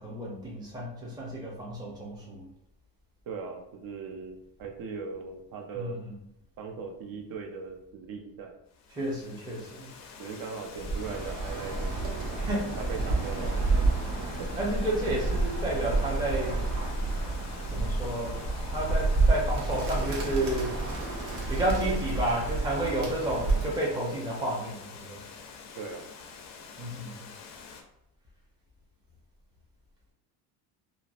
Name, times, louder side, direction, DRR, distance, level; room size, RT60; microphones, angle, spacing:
voice 1, 0.0-2.5 5.7-6.1 8.9-9.9 12.4-13.0 14.6-16.7 17.7-20.9 21.2-25.2 26.8-27.3, right 1 dB, 10° right, -4 dB, 0.6 m, -31 dB
voice 2, 3.3-6.0 6.6-8.5 10.2-12.4 12.8-13.8 14.4-14.5 25.8-26.0, right 5 dB, 50° right, 4 dB, 0.5 m, -39 dB
Water, 8.7-27.8, left 5 dB, 40° left, 0.4 m, -47 dB
Bird, 10.7-23.9, right 3 dB, 75° right, 0.9 m, -29 dB
2.6 x 2.0 x 2.4 m, 0.80 s
supercardioid pair, 105°, 44 cm